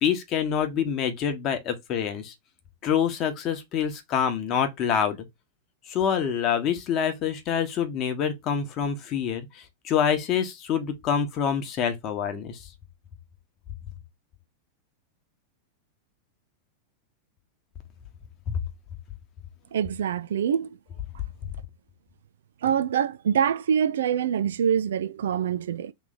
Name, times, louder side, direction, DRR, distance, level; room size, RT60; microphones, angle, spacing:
voice 1, 0.0-2.3 2.8-5.2 5.9-12.6 18.5-18.6, left 8 dB, 35° left, 1.1 m, -26 dB
voice 2, 19.7-20.8 22.6-25.9, right 8 dB, 60° right, 0.4 m, -25 dB
3.2 x 3.2 x 4.0 m
figure-of-eight pair, 90°, 0 cm